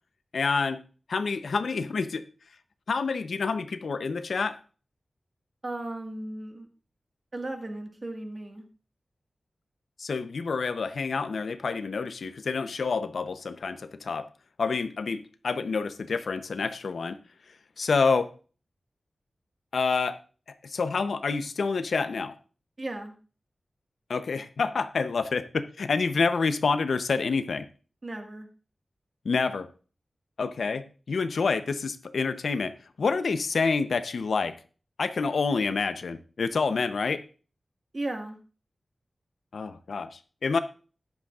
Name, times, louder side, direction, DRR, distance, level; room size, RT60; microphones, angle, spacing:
voice 1, 0.3-0.8 1.1-2.2 2.9-4.6 10.0-14.3 14.6-17.2 17.8-18.3 19.7-20.2 20.6-22.3 24.1-27.7 29.2-29.7 30.4-32.7 33.0-34.5 35.0-37.2 39.5-40.6, left 4 dB, 85° left, 11 dB, 0.7 m, -28 dB
voice 2, 5.6-6.7 7.3-8.6 22.8-23.1 28.0-28.5 37.9-38.4, right 2 dB, 40° right, 4 dB, 1.7 m, -35 dB
13.5 x 10.5 x 2.4 m, 0.37 s
wide cardioid pair, 95°, 0 cm